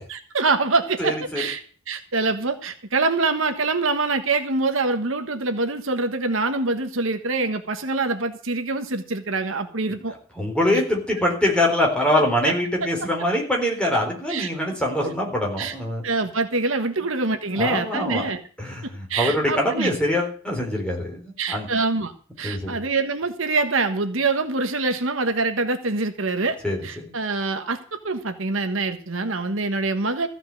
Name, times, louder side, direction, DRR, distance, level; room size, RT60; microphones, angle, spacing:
voice 1, 0.1-1.6 1.9-10.1 10.7-10.8 14.3-14.5 15.0-15.1 15.6-15.7 16.0-18.4 18.8-19.9 21.4-22.1 22.4-26.6 26.8-30.3, right 3 dB, 70° right, 7 dB, 1.4 m, -25 dB
voice 2, 1.0-1.5 10.4-16.0 17.5-18.3 18.6-21.7 22.4-22.8 26.6-27.1, left 1 dB, 5° left, 0 dB, 4.0 m, -24 dB
15.0 x 5.8 x 8.3 m, 0.42 s
head